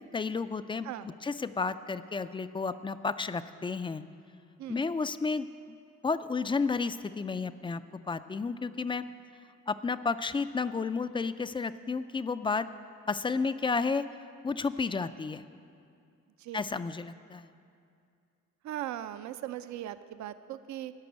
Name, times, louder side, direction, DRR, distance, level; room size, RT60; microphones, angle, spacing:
voice 1, 0.0-4.0 4.7-5.8 6.0-7.8 8.1-9.0 9.7-12.7 13.1-14.0 14.4-15.4 16.5-17.5, left 4 dB, 15° left, 13 dB, 0.3 m, -32 dB
voice 2, 18.6-20.9, right 12 dB, 70° right, 12 dB, 0.5 m, -39 dB
12.0 x 6.1 x 9.1 m, 2.4 s
cardioid pair, 90°, 30 cm